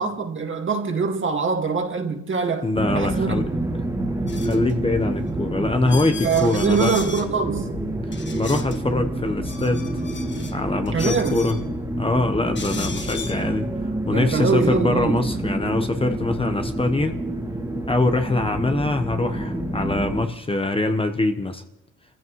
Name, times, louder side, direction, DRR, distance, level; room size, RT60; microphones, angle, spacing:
voice 1, 0.0-3.8 6.2-7.8 10.9-11.5 14.1-15.3, right 5 dB, 40° right, 2.0 m, -24 dB
voice 2, 2.6-3.5 4.4-7.0 8.3-9.9 10.5-11.6 12.0-17.2 17.9-21.6, left 2 dB, 20° left, 1.0 m, -23 dB
sound 1, 2.7-20.3, right 1 dB, 10° right, 2.2 m, -28 dB
sound 2, 4.3-4.7 5.3-5.4 5.9-7.3 8.1-8.8 9.3-10.5 10.9-11.6 12.5-13.4, left 4 dB, 35° left, 1.5 m, -36 dB
29.5 x 15.0 x 3.1 m
cardioid pair, 90°, 30 cm